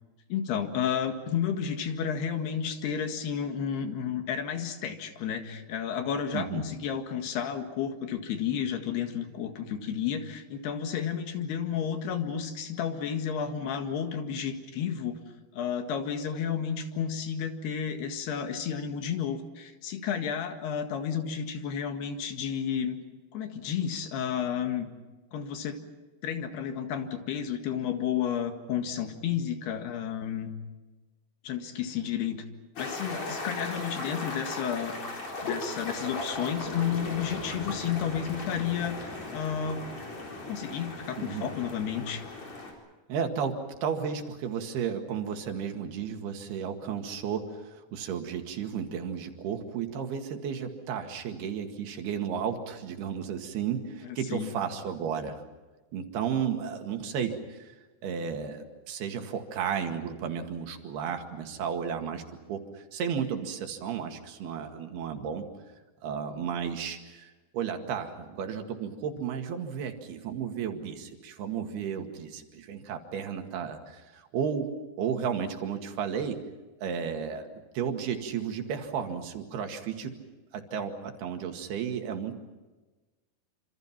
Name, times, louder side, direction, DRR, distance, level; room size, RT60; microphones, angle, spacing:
voice 1, 0.3-15.2 15.5-23.0 23.3-24.9 25.3-25.8 26.2-30.5 31.4-32.4 32.8-35.0 35.4-39.9 40.5-42.2 54.0-54.5, left 8 dB, 85° left, 6 dB, 3.9 m, -32 dB
sound 1, 32.8-42.7, left 2 dB, 45° left, 5.2 m, -37 dB
voice 2, 41.2-41.5 43.1-55.4 55.9-57.7 58.0-62.2 62.5-65.5 66.0-76.4 76.8-77.5 77.7-80.2 80.5-82.4, right 7 dB, 80° right, 5 dB, 4.0 m, -33 dB
27.0 x 27.0 x 5.9 m, 1.2 s
omnidirectional pair, 4.5 m